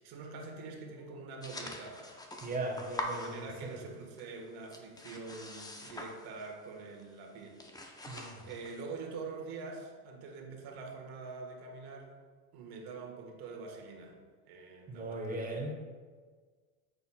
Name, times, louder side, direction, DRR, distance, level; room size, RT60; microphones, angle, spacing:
voice 1, 0.0-2.1 3.1-8.1 8.4-12.1 12.5-14.2 14.4-15.6, right 4 dB, 55° right, 1 dB, 1.5 m, -45 dB
sound 1, 1.4-3.9 4.2-6.7 7.0-7.2 7.5-8.8, left 1 dB, 10° left, 0.7 m, -44 dB
voice 2, 2.4-3.8 8.1-8.4 14.9-15.7, right 2 dB, 20° right, 1 dB, 1.3 m, -38 dB
8.1 x 5.8 x 2.3 m, 1.5 s
hypercardioid pair, 95°, 44 cm